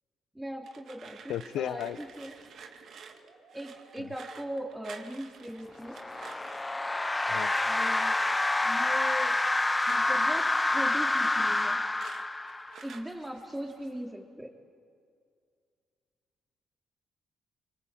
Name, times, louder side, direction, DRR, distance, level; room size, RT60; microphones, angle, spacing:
voice 1, 0.3-2.3 3.5-6.0 7.6-8.2 8.6-9.4 9.9-11.8 12.8-14.5, right 1 dB, 10° right, 2 dB, 3.7 m, -39 dB
sound 1, 0.6-6.7 7.3-10.2 10.5-13.0, right 6 dB, 60° right, 2.0 m, -50 dB
voice 2, 1.3-2.0 4.0-4.1 7.3-7.5, left 12 dB, 85° left, 13 dB, 0.8 m, -34 dB
sound 2, 1.4-14.0, right 3 dB, 85° right, 6.6 m, -60 dB
sound 3, 5.8-12.9, left 2 dB, 15° left, 0.7 m, -28 dB
26.0 x 25.0 x 8.5 m, 2.2 s
cardioid pair, 90°, 0 cm